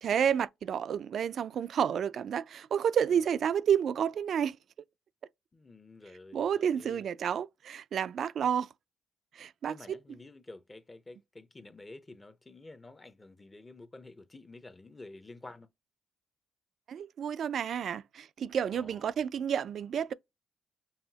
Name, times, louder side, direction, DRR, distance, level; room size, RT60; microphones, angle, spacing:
voice 1, 0.0-4.6 6.3-8.7 9.4-9.7 16.9-20.1, right 8 dB, 60° right, 0.3 m, -30 dB
voice 2, 5.5-7.1 8.4-8.5 9.7-15.7 18.7-19.2, left 2 dB, 20° left, 0.6 m, -50 dB
5.6 x 2.0 x 2.8 m
cardioid pair, 90°, 0 cm